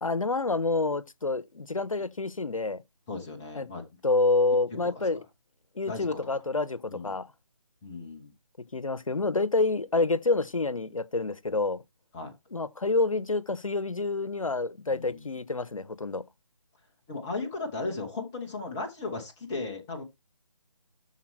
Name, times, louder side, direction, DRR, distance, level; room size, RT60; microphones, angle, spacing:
voice 1, 0.0-2.8 3.5-3.7 4.0-5.2 5.8-7.3 8.6-11.8 12.5-16.2, left 3 dB, 80° left, 0.7 m, -28 dB
voice 2, 3.1-3.8 4.7-4.8 5.9-6.2 6.9-7.2 7.8-8.3 12.1-12.3 14.9-15.3 17.1-20.0, left 3 dB, 5° left, 0.3 m, -36 dB
12.5 x 4.2 x 3.1 m
figure-of-eight pair, 150°, 17 cm